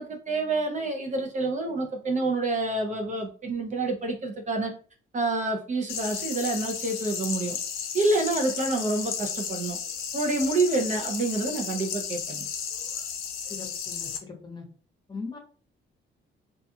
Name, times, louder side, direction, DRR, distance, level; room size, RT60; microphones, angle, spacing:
voice 1, 0.0-4.7 5.1-7.6 7.9-9.8 10.1-12.5, right 2 dB, 40° right, 2 dB, 0.6 m, -28 dB
sound 1, 5.9-14.2, left 7 dB, 90° left, 0.5 m, -34 dB
voice 2, 13.5-14.7 15.1-15.4, left 4 dB, 20° left, 2 dB, 0.8 m, -39 dB
2.4 x 2.3 x 2.7 m, 0.40 s
cardioid pair, 90°, 20 cm